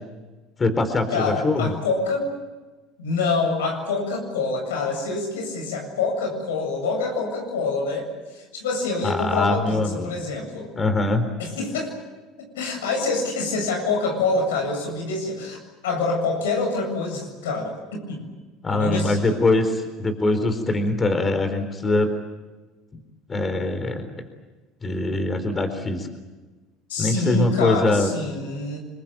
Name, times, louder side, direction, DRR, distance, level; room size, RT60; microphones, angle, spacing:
voice 1, 0.6-1.7 9.0-10.2 10.8-11.2 18.6-22.1 23.3-24.1 24.8-26.1 27.0-28.1, left 2 dB, 25° left, 8 dB, 4.2 m, -22 dB
voice 2, 1.1-2.3 3.0-10.7 11.4-11.9 12.4-15.6 15.8-18.2 18.7-19.4 26.9-28.8, left 3 dB, 90° left, 2 dB, 7.6 m, -26 dB
27.0 x 22.0 x 9.0 m, 1.2 s
hypercardioid pair, 80°, 0 cm